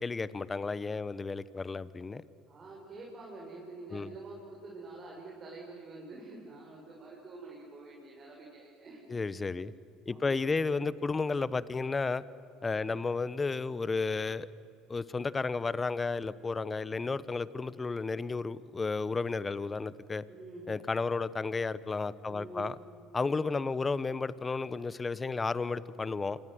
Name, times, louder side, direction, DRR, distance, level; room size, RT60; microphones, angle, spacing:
voice 1, 0.0-2.2 3.9-4.1 9.1-9.7 10.1-12.2 12.6-14.5 14.9-20.2 20.7-22.8 23.1-26.4, left 4 dB, 25° left, 18 dB, 1.0 m, -32 dB
voice 2, 2.5-9.1 10.1-10.6 12.7-13.0 20.3-20.7 22.3-22.8, right 3 dB, 35° right, -3 dB, 6.5 m, -47 dB
27.0 x 25.0 x 7.9 m, 2.8 s
hypercardioid pair, 70°, 0 cm